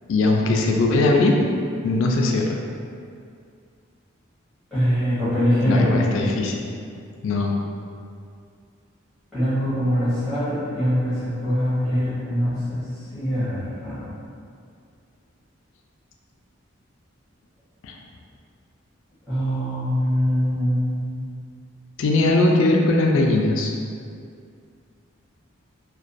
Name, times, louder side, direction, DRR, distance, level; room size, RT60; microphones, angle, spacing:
voice 1, 0.1-1.4 1.8-2.6 5.7-6.6 7.2-7.5 17.8-17.9 22.0-23.7, left 2 dB, 70° left, 1 dB, 0.3 m, -20 dB
voice 2, 4.7-6.0 9.3-12.8 13.1-14.0 19.3-21.2, equal, 5° left, -16 dB, 0.8 m, -23 dB
2.4 x 2.2 x 2.5 m, 2.3 s
head